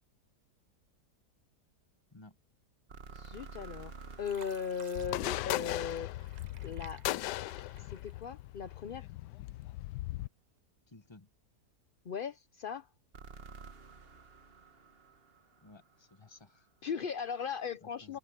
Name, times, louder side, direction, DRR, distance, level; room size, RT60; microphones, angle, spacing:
sound 1, 2.9-7.0 13.1-16.3, right 4 dB, 35° right, 1.6 m, -52 dB
voice 1, 3.1-3.9 4.2-6.1 6.6-7.0 7.8-9.1 12.0-12.9 16.8-18.2, left 7 dB, 60° left, 0.5 m, -38 dB
Fill (with liquid), 3.5-3.9 4.2-8.6 9.1-9.9 10.4-10.6, right 7 dB, 85° right, 0.3 m, -57 dB
sound 2, 5.0-10.3, left 16 dB, 90° left, 1.2 m, -38 dB
voice 2, 10.9-11.3 12.3-12.5 15.6-16.7 17.8-18.2, left 2 dB, 20° left, 1.0 m, -56 dB
omnidirectional pair, 1.8 m